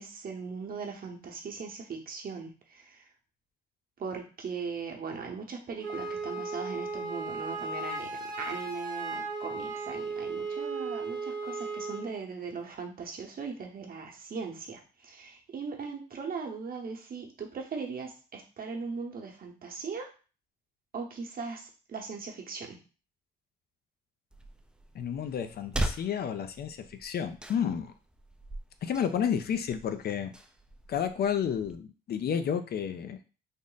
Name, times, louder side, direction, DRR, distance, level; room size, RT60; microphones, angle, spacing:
voice 1, 0.0-3.1 4.0-8.1 8.4-20.1 20.9-22.8, right 5 dB, 50° right, 2 dB, 0.9 m, -39 dB
Wind instrument woodwind instrument, 5.8-12.1, right 3 dB, 75° right, 0.8 m, -36 dB
sound 1, 24.3-31.8, right 1 dB, 5° right, 0.4 m, -40 dB
voice 2, 24.9-27.9 28.8-30.3 30.9-33.2, left 8 dB, 55° left, 9 dB, 0.4 m, -31 dB
3.5 x 2.1 x 3.9 m, 0.35 s
cardioid pair, 90°, 20 cm